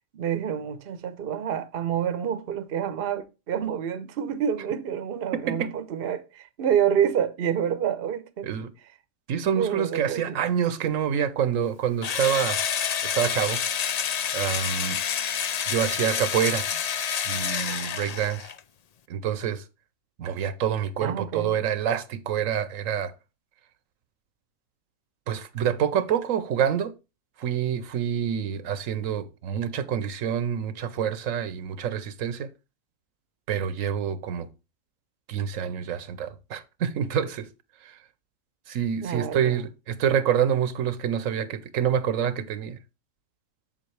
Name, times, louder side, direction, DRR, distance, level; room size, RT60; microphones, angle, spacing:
voice 1, 0.1-8.5 9.5-10.4 21.0-21.5 39.0-39.6, right 8 dB, 50° right, 0.9 m, -28 dB
voice 2, 9.3-12.6 13.0-13.6 14.3-15.0 15.7-16.7 17.2-18.5 19.1-19.6 20.2-23.1 25.3-26.9 27.4-32.5 33.5-34.5 35.3-37.5 37.8-38.0 38.7-42.8, right 8 dB, 80° right, 1.1 m, -27 dB
Engine / Drill, 12.0-18.6, left 8 dB, 75° left, 0.3 m, -28 dB
7.6 x 7.3 x 3.2 m
omnidirectional pair, 1.4 m